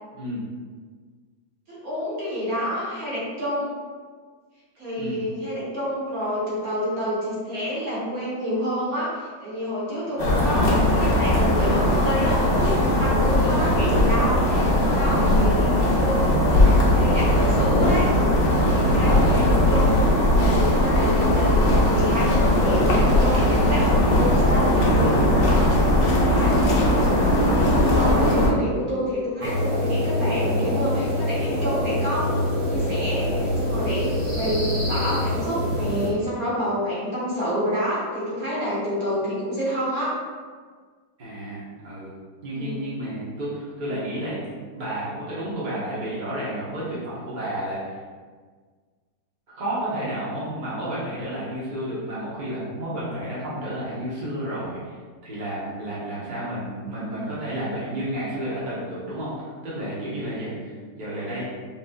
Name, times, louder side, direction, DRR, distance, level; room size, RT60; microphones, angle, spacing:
voice 1, 0.1-0.4 5.0-5.2 10.1-10.6 13.4-13.6 15.5-15.9 19.3-19.5 26.3-26.9 41.2-42.1 42.4-44.4 44.7-47.9 49.5-54.9 55.2-61.5, right 1 dB, 30° right, -9 dB, 1.3 m, -31 dB
voice 2, 1.7-3.7 4.8-15.6 15.9-18.1 18.7-20.0 20.3-25.3 26.2-27.3 27.7-32.4 32.7-40.1 42.5-43.0, equal, 55° right, -8 dB, 1.7 m, -28 dB
sound 1, 10.2-28.5, left 1 dB, 75° left, 1.6 m, -19 dB
sound 2, 29.4-36.1, left 1 dB, 15° left, 1.0 m, -25 dB
5.9 x 3.3 x 2.5 m, 1.6 s
omnidirectional pair, 2.0 m